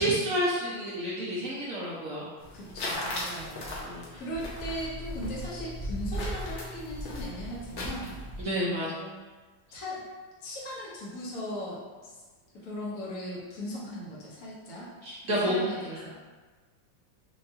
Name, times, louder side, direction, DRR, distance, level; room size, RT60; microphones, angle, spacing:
voice 1, 0.0-2.3 3.8-4.2 8.4-8.9 9.7-9.8 15.0-15.5, right 1 dB, 80° right, -7 dB, 0.7 m, -30 dB
sound 1, 2.4-8.4, left 1 dB, 70° left, 0.6 m, -36 dB
voice 2, 2.5-3.8 4.1-8.1 8.6-9.1 9.7-10.0 10.4-12.2 12.5-14.9 15.2-16.1, equal, 50° left, -6 dB, 1.3 m, -38 dB
4.5 x 2.6 x 2.7 m, 1.4 s
omnidirectional pair, 2.2 m